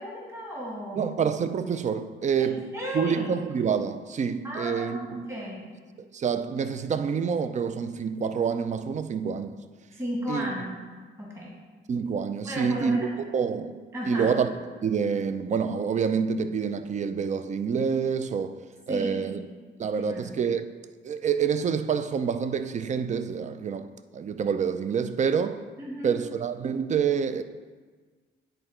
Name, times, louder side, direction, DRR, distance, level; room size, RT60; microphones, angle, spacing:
voice 1, 0.0-1.1 2.4-3.4 4.4-5.6 10.0-10.8 11.2-11.5 12.5-13.1 13.9-14.3 18.9-19.3 20.0-20.3 25.8-26.2, equal, 15° right, 2.1 m, -34 dB
voice 2, 1.0-5.2 6.0-9.6 10.3-10.5 11.9-13.1 13.3-13.8 14.0-14.5 14.8-18.6 18.9-19.4 19.8-20.7 21.0-25.6 26.0-27.4, right 6 dB, 35° right, 0.5 m, -27 dB
9.9 x 3.9 x 4.4 m
cardioid pair, 90°, 20 cm